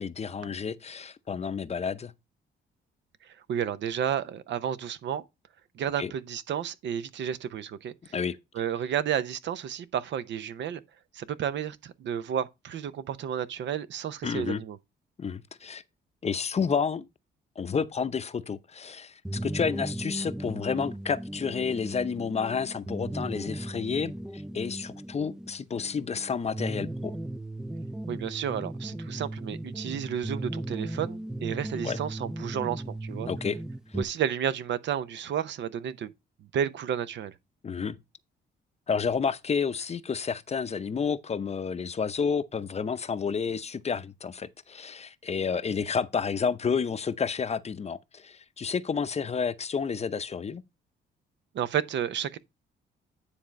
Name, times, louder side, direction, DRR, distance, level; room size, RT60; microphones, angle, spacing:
voice 1, 0.0-2.1 6.0-6.1 8.1-8.4 14.2-14.6 15.2-15.8 16.2-17.1 17.6-27.2 31.8-32.0 33.3-33.6 37.6-38.0 38.9-50.6, left 6 dB, 35° left, 0.7 m, -30 dB
voice 2, 3.2-5.2 5.7-7.9 8.5-10.8 11.1-14.8 28.1-33.3 34.0-36.1 36.5-37.3 51.5-52.4, right 9 dB, 65° right, 0.7 m, -31 dB
sound 1, 19.2-34.0, right 1 dB, 5° right, 0.3 m, -37 dB
9.8 x 3.5 x 5.1 m
cardioid pair, 90°, 20 cm